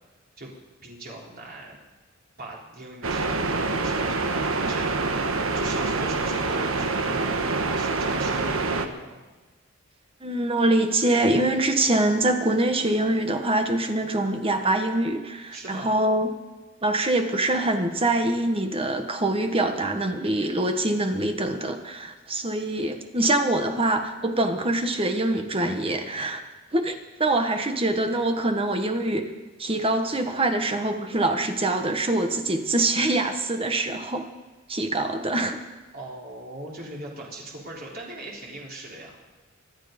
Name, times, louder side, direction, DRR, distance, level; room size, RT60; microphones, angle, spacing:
voice 1, 0.8-1.8 2.4-5.0 5.5-9.2 15.5-15.9 35.9-39.2, right 1 dB, 50° right, -3 dB, 3.6 m, -40 dB
sound 1, 3.0-8.9, right 3 dB, 75° right, 1.3 m, -26 dB
voice 2, 10.2-16.3 16.8-26.4 26.7-29.3 29.6-34.3 34.7-35.6, right 2 dB, 25° right, 5 dB, 1.4 m, -24 dB
25.0 x 10.5 x 5.2 m, 1.2 s
head